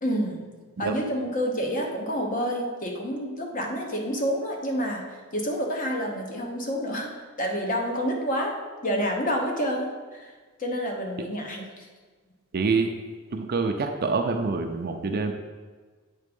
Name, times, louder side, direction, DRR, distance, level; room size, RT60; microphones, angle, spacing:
voice 1, 0.0-0.5 0.8-10.3 10.6-11.9, equal, 40° left, 1 dB, 1.1 m, -29 dB
voice 2, 12.5-12.9 13.3-15.3, right 4 dB, 45° right, 4 dB, 0.5 m, -26 dB
8.3 x 3.5 x 5.3 m, 1.4 s
head